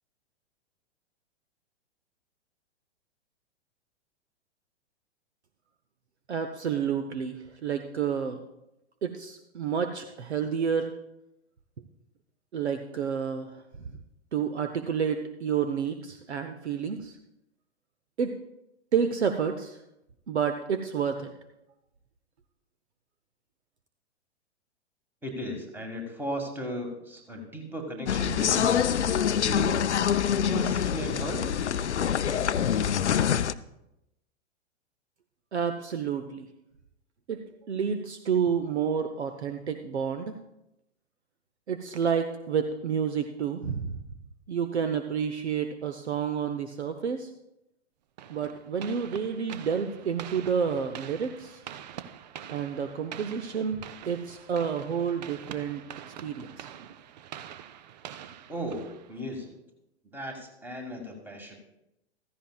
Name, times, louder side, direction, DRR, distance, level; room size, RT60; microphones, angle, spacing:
voice 1, 6.3-8.4 9.0-11.0 12.5-13.6 14.3-17.2 18.2-18.4 18.9-19.8 20.3-21.3 35.5-36.5 37.3-40.4 41.7-44.0 44.5-47.3 48.3-51.6 52.5-55.8 56.1-56.7, right 7 dB, 70° right, 7 dB, 0.8 m, -30 dB
voice 2, 25.2-29.8 30.3-31.5 58.5-59.5 60.1-61.6, right 1 dB, 5° right, 3 dB, 1.7 m, -36 dB
sound 1, 28.1-33.5, left 8 dB, 75° left, 0.5 m, -25 dB
sound 2, 48.2-59.5, right 10 dB, 40° right, 0.5 m, -45 dB
15.0 x 14.5 x 2.3 m, 0.87 s
figure-of-eight pair, 105°, 35 cm